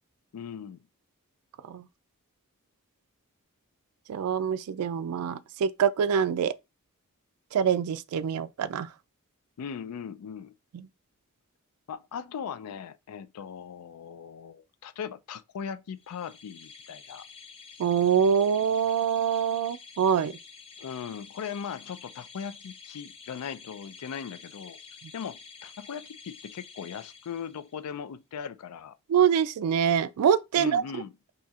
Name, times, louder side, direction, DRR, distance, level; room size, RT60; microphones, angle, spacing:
voice 1, 0.3-0.8 9.6-10.5 11.9-17.2 20.8-24.8 25.1-29.0 30.5-31.1, left 7 dB, 80° left, 0.4 m, -39 dB
voice 2, 4.1-6.5 7.5-8.9 10.7-10.8 17.8-20.4 29.1-30.8, right 7 dB, 75° right, 0.3 m, -25 dB
sound 1, 16.0-27.8, left 5 dB, 25° left, 0.5 m, -49 dB
4.1 x 2.8 x 2.3 m
head